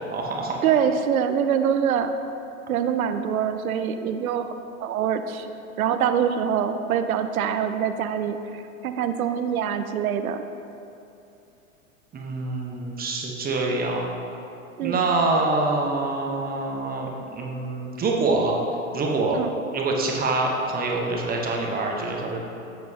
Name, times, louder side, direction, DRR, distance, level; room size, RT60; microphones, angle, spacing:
voice 1, 0.0-0.6 12.1-14.1 14.8-18.6 18.9-19.4 19.7-22.4, right 3 dB, 20° right, 0 dB, 1.0 m, -25 dB
voice 2, 0.6-2.1 2.7-4.5 4.8-5.5 5.8-10.4 14.8-15.0 19.3-19.5, right 8 dB, 80° right, 9 dB, 0.6 m, -24 dB
10.5 x 7.8 x 2.8 m, 2.7 s
hypercardioid pair, 110°, 42 cm